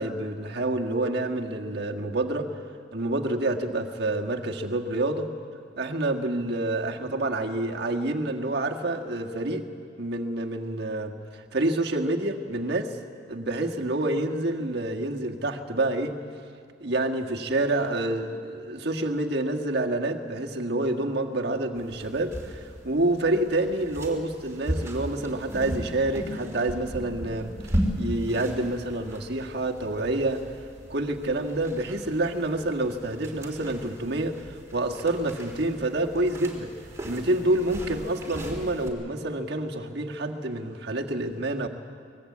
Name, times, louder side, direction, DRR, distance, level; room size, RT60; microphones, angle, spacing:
voice 1, 0.0-2.5 2.9-5.3 5.8-9.6 10.0-13.0 13.3-16.2 16.8-30.5 30.9-36.7 37.0-41.7, right 2 dB, 60° right, 2 dB, 1.7 m, -28 dB
sound 1, 21.7-38.9, equal, 15° right, 3.4 m, -36 dB
24.0 x 20.0 x 8.5 m, 2.3 s
head